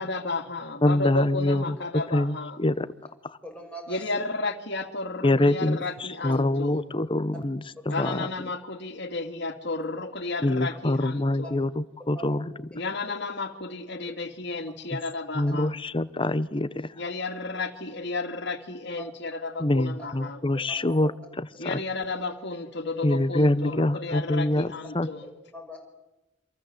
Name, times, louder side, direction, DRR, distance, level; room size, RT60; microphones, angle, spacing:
voice 1, 0.0-2.6 3.9-6.8 7.9-11.6 12.7-15.7 17.0-20.4 21.6-25.3, left 3 dB, 60° left, 6 dB, 2.8 m, -33 dB
voice 2, 0.8-2.9 3.2-3.4 5.2-8.3 10.4-12.5 14.9-15.0 15.3-16.9 19.6-21.1 21.4-21.8 23.0-25.1, left 1 dB, 25° left, 16 dB, 1.0 m, -25 dB
voice 3, 3.4-4.0 5.8-5.9 8.0-8.1 11.4-11.5 12.1-12.3 19.0-19.1 20.2-20.3 20.7-21.1 21.6-21.7 25.2-25.8, right 1 dB, 5° left, 0 dB, 6.5 m, -41 dB
28.5 x 26.0 x 8.1 m, 0.94 s
head